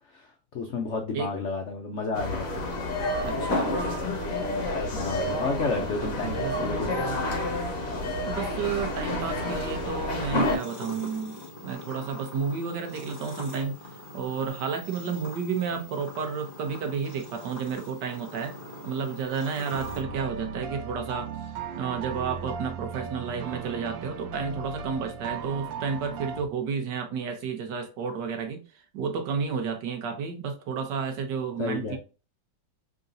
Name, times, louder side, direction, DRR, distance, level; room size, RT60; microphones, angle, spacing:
voice 1, 0.1-2.6 4.9-7.3 19.8-20.1 31.6-32.0, left 3 dB, 70° left, 0.6 m, -32 dB
sound 1, 2.2-10.6, left 1 dB, 50° left, 1.5 m, -29 dB
voice 2, 3.2-3.8 5.8-7.2 8.2-13.8 14.1-18.5 18.8-21.3 21.8-28.6 28.9-32.0, right 6 dB, 70° right, 1.4 m, -31 dB
sound 2, 10.4-20.0, left 2 dB, 30° left, 1.9 m, -43 dB
sound 3, 18.6-19.1 19.7-26.4, right 6 dB, 90° right, 1.4 m, -37 dB
3.8 x 3.8 x 2.6 m
omnidirectional pair, 2.1 m